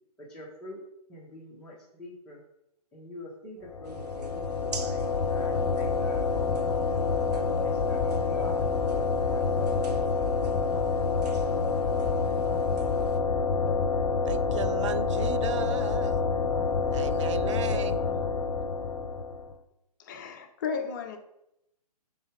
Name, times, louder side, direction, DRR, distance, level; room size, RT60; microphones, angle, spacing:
voice 1, 0.2-0.8 1.1-2.4 2.9-6.6 7.0-10.0, left 1 dB, 5° left, -7 dB, 1.2 m, -46 dB
sound 1, 3.7-19.5, left 4 dB, 65° left, 0.8 m, -27 dB
sound 2, 3.8-13.2, right 5 dB, 80° right, 0.8 m, -47 dB
voice 2, 14.3-16.2 16.8-18.0, right 7 dB, 50° right, 12 dB, 0.5 m, -35 dB
voice 3, 20.0-21.2, left 5 dB, 30° left, 5 dB, 0.7 m, -34 dB
7.1 x 4.0 x 3.7 m, 0.82 s
hypercardioid pair, 150°, 20 cm